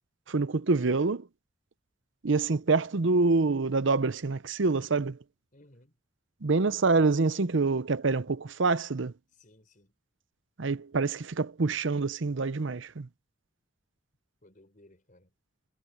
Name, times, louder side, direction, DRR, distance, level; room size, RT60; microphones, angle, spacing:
voice 1, 0.3-1.3 2.2-5.2 6.4-9.1 10.6-13.1, right 3 dB, 65° right, 0.7 m, -26 dB
voice 2, 5.5-6.0 9.3-9.9 14.4-15.3, left 1 dB, 40° left, 5.1 m, -59 dB
head